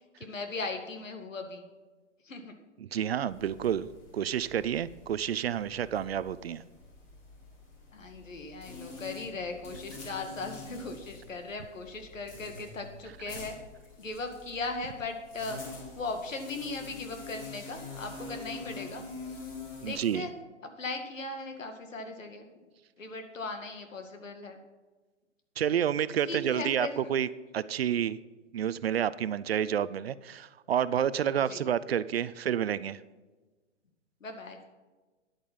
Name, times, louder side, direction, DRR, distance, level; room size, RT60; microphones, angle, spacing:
voice 1, 0.2-1.7 2.2-2.5 7.9-13.6 14.0-15.6 16.0-19.0 19.8-20.3 20.6-22.5 23.0-24.6 26.2-27.1 31.5-31.6 34.2-34.6, left 3 dB, 90° left, 5 dB, 2.2 m, -38 dB
voice 2, 2.8-6.6 19.8-20.3 25.6-27.3 27.5-28.2 28.5-33.0, right 9 dB, 55° right, 17 dB, 0.5 m, -29 dB
sound 1, 3.3-20.1, left 3 dB, 25° left, 3.7 m, -46 dB
10.5 x 8.8 x 5.5 m, 1.2 s
hypercardioid pair, 155°, 38 cm